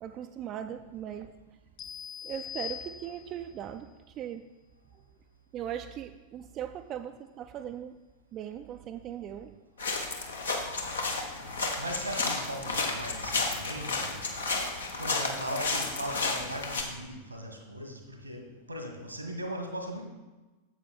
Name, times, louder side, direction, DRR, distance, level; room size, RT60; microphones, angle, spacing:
voice 1, 0.0-1.4 2.2-4.5 5.5-8.0 8.3-9.6, right 10 dB, 35° right, 7 dB, 0.4 m, -39 dB
sound 1, 1.8-3.5, left 9 dB, 35° left, 0.8 m, -41 dB
sound 2, 9.8-16.8, left 3 dB, 70° left, 1.2 m, -32 dB
voice 2, 11.8-14.3 15.0-20.0, equal, 85° right, 4 dB, 1.6 m, -38 dB
9.4 x 7.5 x 4.3 m, 1.2 s
figure-of-eight pair, 90°, 0 cm